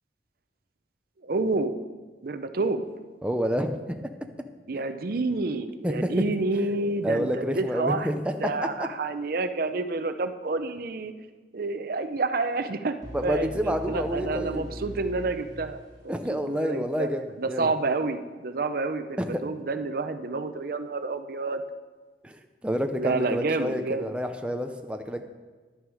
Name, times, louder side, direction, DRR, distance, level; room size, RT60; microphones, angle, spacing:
voice 1, 1.2-1.8 2.2-2.9 4.7-8.1 8.4-11.1 11.5-13.0 13.2-17.1 17.4-21.6 23.0-24.1, right 3 dB, 55° right, 9 dB, 0.6 m, -29 dB
voice 2, 3.2-4.1 5.8-6.2 7.0-8.5 13.1-14.7 16.1-17.2 17.5-17.7 19.2-19.4 22.2-25.2, equal, 5° right, 5 dB, 0.5 m, -28 dB
sound 1, 13.0-16.9, equal, 25° right, 3.2 m, -41 dB
11.0 x 9.4 x 4.8 m, 1.3 s
head